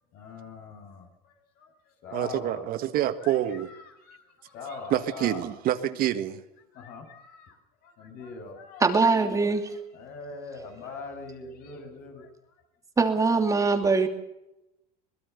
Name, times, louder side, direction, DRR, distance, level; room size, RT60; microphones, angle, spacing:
voice 1, 0.1-1.7 2.0-2.7 3.2-5.4 6.7-7.6 7.8-8.9 9.9-12.3, left 4 dB, 55° left, 7.3 m, -42 dB
voice 2, 2.1-3.7 4.9-6.4, right 12 dB, 50° right, 1.7 m, -27 dB
voice 3, 8.8-9.7 13.0-14.1, right 4 dB, 15° right, 2.8 m, -22 dB
23.0 x 20.5 x 6.9 m
supercardioid pair, 130°, 20 cm